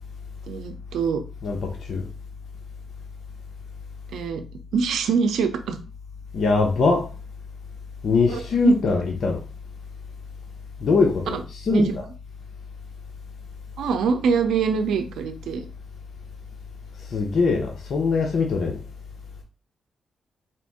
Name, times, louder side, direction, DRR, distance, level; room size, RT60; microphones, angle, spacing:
voice 1, 0.5-1.2 4.1-4.4 4.7-5.8 8.3-8.8 11.3-11.4 11.7-11.9 13.8-15.7, right 5 dB, 85° right, 0.6 m, -23 dB
voice 2, 1.4-2.1 6.3-7.1 8.0-9.4 10.8-12.0 17.1-18.8, left 4 dB, 65° left, 0.7 m, -22 dB
4.5 x 2.6 x 3.5 m
cardioid pair, 85°, 0 cm